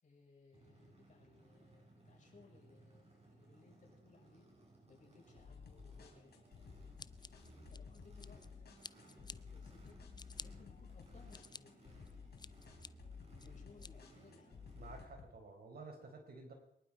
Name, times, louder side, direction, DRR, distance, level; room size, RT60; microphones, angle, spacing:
voice 1, 0.0-4.5 4.9-6.8 7.4-8.6 9.3-10.0 10.4-12.3 13.4-14.7, left 4 dB, 45° left, 0 dB, 6.1 m, -64 dB
Race car auto racing / Idling / Accelerating revving vroom, 0.5-15.0, right 2 dB, 35° right, 7.0 m, -63 dB
sound 1, 5.4-15.3, left 5 dB, 65° left, 3.5 m, -54 dB
Scissors, 7.0-8.5 8.8-9.4 9.9-10.5 11.0-11.6 12.1-12.9 13.4-13.9, left 4 dB, 25° left, 0.5 m, -51 dB
voice 2, 14.7-16.5, right 3 dB, 60° right, 3 dB, 4.5 m, -52 dB
23.0 x 11.5 x 4.9 m, 0.79 s
cardioid pair, 75°, 18 cm